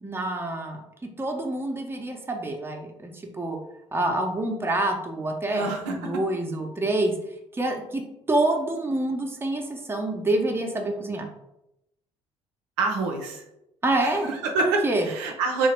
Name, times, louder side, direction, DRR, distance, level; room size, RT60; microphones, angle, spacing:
voice 1, 0.0-0.8 1.2-3.6 3.9-7.1 7.5-8.0 8.3-11.3 13.8-14.3 14.6-15.1, right 2 dB, 15° right, 2 dB, 0.7 m, -27 dB
voice 2, 5.5-6.2 12.8-13.4 14.0-15.7, right 3 dB, 70° right, 2 dB, 0.5 m, -27 dB
3.1 x 2.8 x 3.3 m, 0.85 s
figure-of-eight pair, 50°, 16 cm